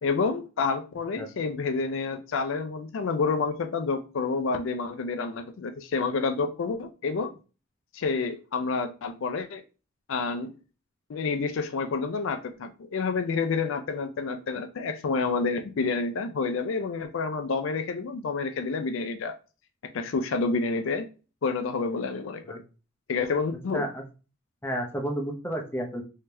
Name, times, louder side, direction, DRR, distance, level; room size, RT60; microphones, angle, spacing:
voice 1, 0.0-7.3 7.9-9.6 10.1-10.6 11.1-19.3 19.9-21.1 21.4-22.6 23.1-23.9, left 4 dB, 70° left, 0.4 m, -29 dB
voice 2, 23.7-24.0 24.6-26.0, right 1 dB, 10° left, 0.6 m, -31 dB
3.3 x 2.8 x 3.3 m
head